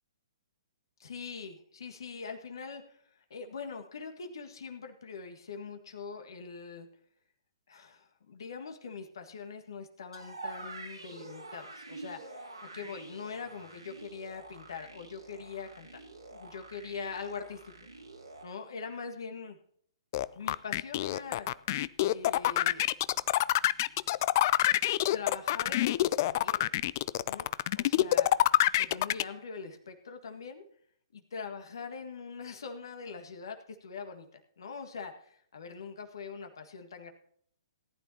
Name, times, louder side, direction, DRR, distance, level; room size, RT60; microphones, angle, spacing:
voice 1, 1.0-6.9 7.7-12.4 12.7-16.0 16.3-17.7 18.4-19.6 20.3-21.5 22.1-22.9 25.1-26.6 27.2-27.5 27.7-28.3 28.8-30.6 31.1-37.1, left 5 dB, 60° left, 5 dB, 1.7 m, -43 dB
sound 1, 10.1-18.4, right 3 dB, 85° right, 3.0 m, -47 dB
sound 2, 20.1-29.2, left 14 dB, 40° left, 0.4 m, -26 dB
18.5 x 10.5 x 2.8 m, 0.63 s
figure-of-eight pair, 120°, 3 cm